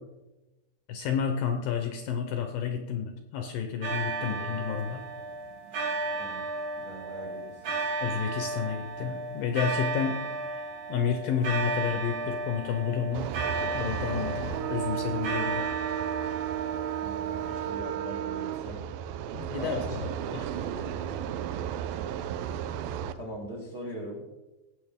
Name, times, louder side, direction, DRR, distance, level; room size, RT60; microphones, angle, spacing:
voice 1, 0.9-5.1 8.0-13.4 13.7-15.7 19.3-20.5, left 7 dB, 75° left, 5 dB, 2.1 m, -31 dB
sound 1, 3.8-17.7, right 3 dB, 75° right, 5.2 m, -34 dB
voice 2, 4.2-4.5 6.1-6.5 6.8-7.9 17.0-18.9 19.5-21.1 23.1-24.2, right 1 dB, 55° right, -2 dB, 1.0 m, -42 dB
sound 2, 13.1-23.1, right 10 dB, 90° right, 2.1 m, -33 dB
17.0 x 7.8 x 3.6 m, 1.1 s
omnidirectional pair, 4.8 m